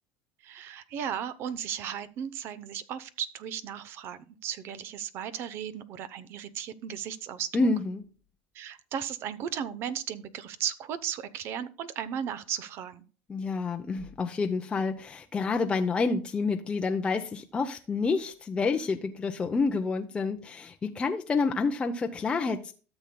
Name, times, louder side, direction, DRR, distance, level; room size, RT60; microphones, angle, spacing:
voice 1, 0.4-7.5 8.5-13.0, right 9 dB, 50° right, 15 dB, 0.8 m, -35 dB
voice 2, 7.5-8.0 13.3-22.7, left 4 dB, 20° left, 4 dB, 0.6 m, -28 dB
13.5 x 7.0 x 2.2 m, 0.37 s
supercardioid pair, 120°, 5 cm